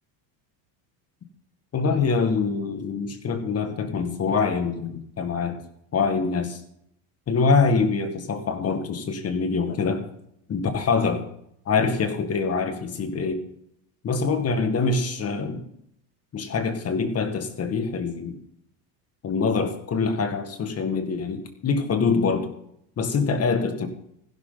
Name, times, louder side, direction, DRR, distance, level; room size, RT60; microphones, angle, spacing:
voice 1, 1.7-5.6 5.9-6.6 7.3-10.0 10.5-11.2 11.7-13.4 14.0-15.6 16.3-18.4 19.2-22.5 23.0-23.9, left 4 dB, 30° left, 7 dB, 2.0 m, -24 dB
15.5 x 12.0 x 4.0 m, 0.73 s
supercardioid pair, 130°, 47 cm